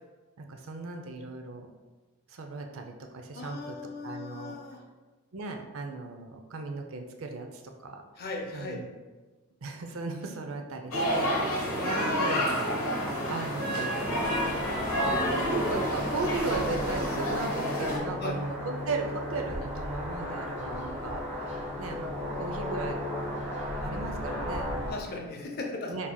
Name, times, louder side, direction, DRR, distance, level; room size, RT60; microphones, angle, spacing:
voice 1, 0.4-1.7 2.3-3.8 4.0-4.6 5.3-8.0 8.5-8.9 9.6-14.3 15.0-23.0 23.8-25.2 25.9-26.1, right 3 dB, 75° right, 4 dB, 0.5 m, -37 dB
voice 2, 3.3-4.8 8.2-8.8 12.1-12.4 18.2-18.4 24.9-25.9, left 3 dB, 45° left, 2 dB, 0.6 m, -38 dB
sound 1, 10.9-18.0, equal, 80° left, 1.1 m, -29 dB
sound 2, 14.0-24.9, left 1 dB, 30° right, 1.5 m, -35 dB
4.7 x 4.2 x 2.2 m, 1.3 s
head